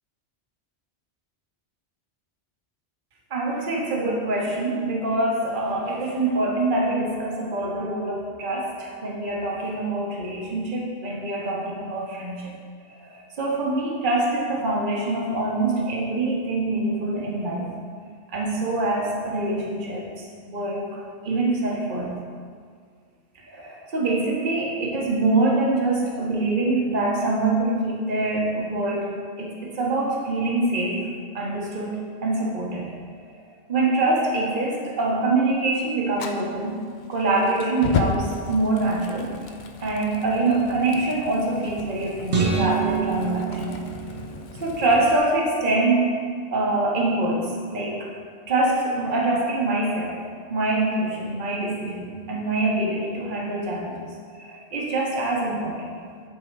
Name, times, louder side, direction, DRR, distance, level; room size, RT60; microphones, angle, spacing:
voice 1, 3.3-12.5 12.9-17.7 18.3-22.2 23.4-29.1 29.4-31.1 31.3-32.9 33.7-36.8 37.1-39.3 39.8-43.8 44.5-46.1 46.5-48.1 48.5-50.1 50.5-54.0 54.3-56.0, right 2 dB, 45° right, -2 dB, 1.2 m, -25 dB
Fire, 36.1-45.2, left 5 dB, 55° left, 0.6 m, -34 dB
sound 1, 42.3-44.7, right 5 dB, 70° right, 1.4 m, -26 dB
10.5 x 3.8 x 4.5 m, 2.1 s
omnidirectional pair, 1.2 m